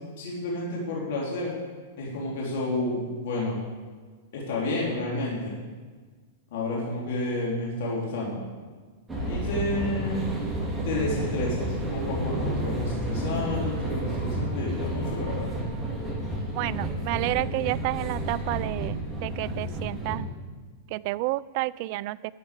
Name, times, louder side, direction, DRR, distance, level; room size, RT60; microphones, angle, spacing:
voice 1, 0.2-1.5 2.0-3.6 4.3-5.6 6.5-8.4 9.3-10.2 10.9-15.5, left 2 dB, 65° left, -4 dB, 3.5 m, -30 dB
sound 1, 9.1-20.2, right 1 dB, 15° right, 3.1 m, -31 dB
voice 2, 16.5-20.3 20.9-22.3, right 19 dB, 50° right, 20 dB, 0.3 m, -30 dB
12.5 x 5.7 x 8.4 m, 1.4 s
hypercardioid pair, 120°, 0 cm